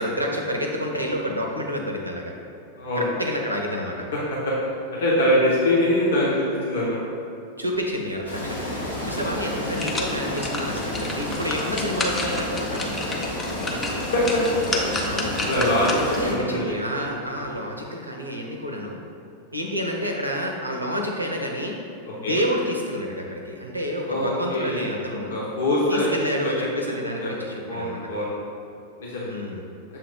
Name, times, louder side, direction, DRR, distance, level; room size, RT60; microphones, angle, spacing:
voice 1, 0.0-2.3 3.0-4.1 7.6-8.8 9.0-13.4 15.0-15.5 16.2-19.0 19.5-21.8 22.2-25.4 25.9-28.2 29.2-29.6, equal, 85° right, 1 dB, 0.7 m, -29 dB
voice 2, 2.8-3.1 4.4-4.5 4.9-7.0 9.1-9.3 13.7-13.8 14.1-14.4 15.5-16.8 17.1-17.2 22.2-22.4 24.1-26.1 26.4-26.8 27.2-28.3 29.0-29.3, left 1 dB, 60° left, -6 dB, 1.1 m, -24 dB
sound 1, 8.2-16.3, left 1 dB, 90° left, 1.4 m, -30 dB
sound 2, 9.7-16.3 16.7-16.8, left 2 dB, 20° left, 0.8 m, -31 dB
7.0 x 2.9 x 5.3 m, 2.7 s
figure-of-eight pair, 90°, 0 cm